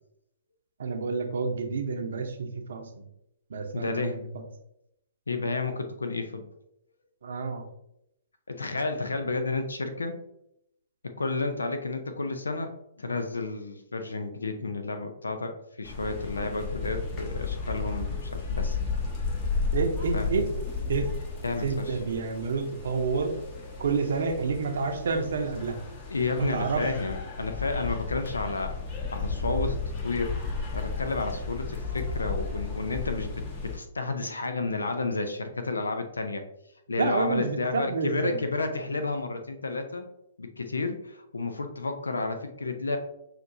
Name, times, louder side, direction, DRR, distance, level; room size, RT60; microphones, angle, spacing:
voice 1, 0.8-2.9 3.5-4.3 7.2-7.6 19.7-20.5 20.9-21.1 21.6-23.3 23.8-25.8 26.4-26.8 37.0-38.4, right 4 dB, 65° right, 5 dB, 0.8 m, -29 dB
voice 2, 3.7-4.2 5.3-6.4 8.5-10.2 11.0-12.7 13.0-18.8 20.1-20.5 21.4-22.0 26.1-28.7 29.1-29.8 30.0-30.4 30.7-36.4 36.9-40.1 40.4-43.0, left 3 dB, 85° left, 7 dB, 0.5 m, -31 dB
sound 1, 15.8-33.8, left 4 dB, 30° left, 1.1 m, -33 dB
5.8 x 2.7 x 2.7 m, 0.80 s
hypercardioid pair, 125°, 0 cm